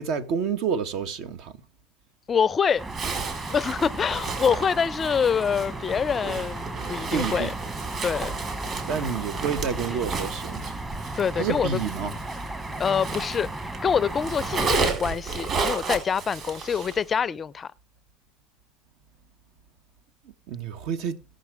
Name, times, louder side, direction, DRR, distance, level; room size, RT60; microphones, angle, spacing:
voice 1, 0.0-1.5 7.1-7.5 8.9-10.8 11.4-12.1 16.7-16.9 20.5-21.2, right 7 dB, 60° right, 1.3 m, -29 dB
voice 2, 2.3-2.8 3.5-7.5 8.0-8.3 11.1-11.8 12.8-13.5 13.8-17.7, left 7 dB, 25° left, 0.5 m, -25 dB
sound 1, 2.8-14.8, right 2 dB, 15° right, 1.3 m, -35 dB
Zipper (clothing), 2.9-13.8 14.1-17.0, right 4 dB, 40° right, 4.1 m, -33 dB
18.5 x 6.5 x 3.5 m
supercardioid pair, 110°, 0 cm